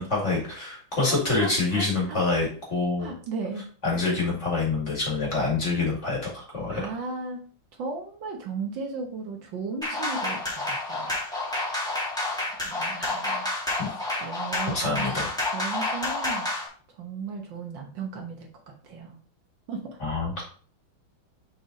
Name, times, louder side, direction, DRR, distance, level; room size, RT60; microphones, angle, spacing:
voice 1, 0.0-3.1 3.8-6.8 13.0-13.2 13.8-13.9 14.7-15.3 20.0-20.4, left 3 dB, 35° left, -3 dB, 2.4 m, -26 dB
voice 2, 1.0-2.2 3.0-3.6 6.8-7.4 7.8-11.1 12.5-13.5 14.2-15.1 15.5-16.5 16.9-18.5 18.8-19.2 19.7-20.0, right 4 dB, 65° right, 2 dB, 1.6 m, -36 dB
sound 1, 9.8-16.7, left 2 dB, ahead, 1.7 m, -29 dB
6.6 x 3.9 x 3.9 m, 0.43 s
omnidirectional pair, 2.3 m